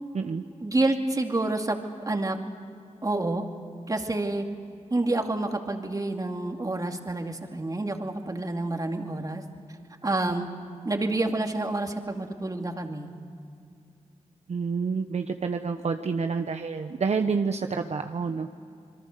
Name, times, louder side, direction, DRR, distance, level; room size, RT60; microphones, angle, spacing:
voice 1, 0.6-1.8 2.1-2.4 3.0-3.5 3.9-4.4 4.9-9.4 10.0-10.5 10.8-13.1, right 2 dB, 30° right, 3 dB, 2.5 m, -28 dB
voice 2, 14.5-18.5, right 5 dB, 60° right, 6 dB, 0.9 m, -28 dB
27.5 x 22.5 x 6.7 m, 2.4 s
cardioid pair, 70°, 12 cm